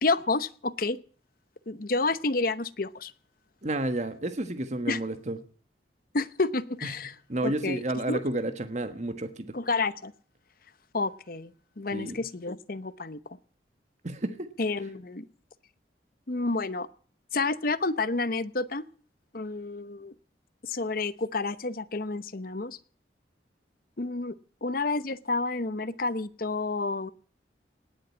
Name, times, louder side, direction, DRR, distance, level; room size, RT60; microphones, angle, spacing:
voice 1, 0.0-1.0 1.7-3.1 4.9-5.0 6.1-7.1 7.4-7.8 8.1-8.2 9.5-10.1 10.9-13.2 14.6-15.2 16.3-16.9 17.3-18.8 19.3-20.1 20.6-22.8 24.0-24.3 24.6-27.1, left 3 dB, 55° left, 0.9 m, -29 dB
voice 2, 3.6-5.4 6.8-6.9 7.3-9.6 11.9-12.2 14.0-14.5, right 1 dB, 40° right, 1.4 m, -31 dB
19.0 x 7.9 x 9.7 m
head